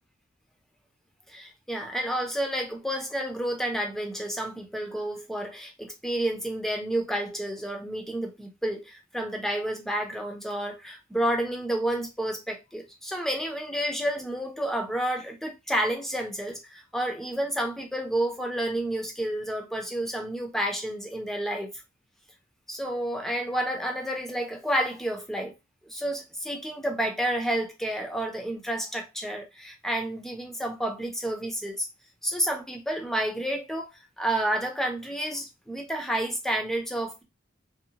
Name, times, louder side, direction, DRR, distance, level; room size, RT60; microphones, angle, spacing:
voice 1, 1.3-21.8 22.7-25.5 25.9-31.9 32.2-33.9 34.2-37.2, right 1 dB, ahead, 0.5 m, -30 dB
2.7 x 2.1 x 2.7 m
head